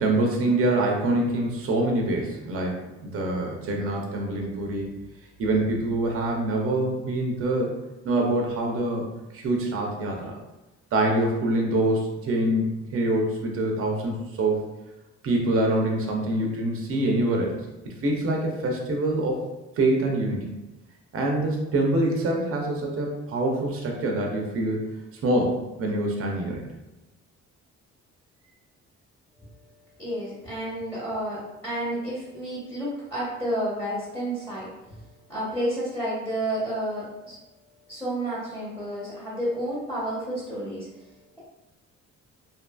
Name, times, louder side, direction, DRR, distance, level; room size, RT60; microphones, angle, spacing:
voice 1, 0.0-4.9 5.4-7.7 8.0-9.0 9.3-10.4 10.9-12.7 12.9-14.7 15.2-17.6 17.9-19.4 19.8-20.5 21.1-24.8 25.2-26.6, right 1 dB, 45° right, 0 dB, 0.6 m, -25 dB
voice 2, 30.0-37.4 37.9-41.4, right 1 dB, 5° left, -9 dB, 0.9 m, -31 dB
2.6 x 2.5 x 2.2 m, 1.0 s
cardioid pair, 90°, 30 cm